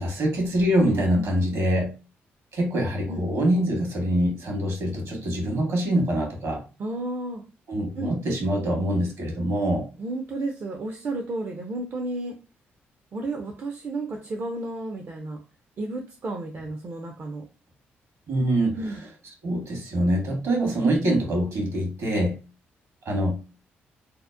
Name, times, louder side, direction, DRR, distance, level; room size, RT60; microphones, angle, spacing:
voice 1, 0.0-1.9 2.5-6.6 7.7-9.9 18.3-18.8 19.4-22.4 23.0-23.5, right 1 dB, 70° right, 0 dB, 1.1 m, -24 dB
voice 2, 6.8-7.4 8.0-8.2 10.0-12.3 13.1-15.4 15.8-17.5 18.7-19.1, right 2 dB, 50° right, 2 dB, 0.5 m, -32 dB
2.7 x 2.0 x 2.3 m, 0.33 s
supercardioid pair, 50°, 5 cm